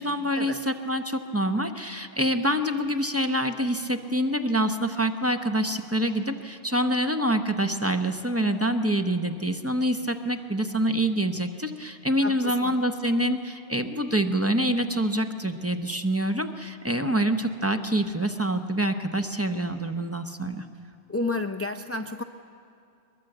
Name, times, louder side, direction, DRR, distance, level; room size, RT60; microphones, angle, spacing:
voice 1, 0.0-20.6, right 1 dB, 15° right, 7 dB, 0.8 m, -26 dB
voice 2, 12.2-12.8 21.1-22.2, left 2 dB, 20° left, 6 dB, 0.4 m, -31 dB
22.0 x 21.0 x 7.9 m, 2.5 s
omnidirectional pair, 1.1 m